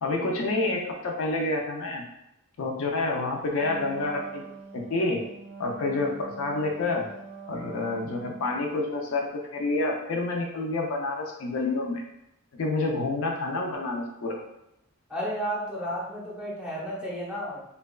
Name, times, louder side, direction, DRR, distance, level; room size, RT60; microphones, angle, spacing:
voice 1, 0.0-2.0 2.6-4.4 4.7-5.2 5.6-7.1 7.5-12.0 12.6-14.4, left 2 dB, 65° left, 1 dB, 0.4 m, -28 dB
Wind instrument woodwind instrument, 3.6-8.7, right 4 dB, 60° right, 0.4 m, -44 dB
voice 2, 15.1-17.6, equal, 5° right, -6 dB, 0.6 m, -32 dB
2.8 x 2.2 x 2.3 m, 0.84 s
head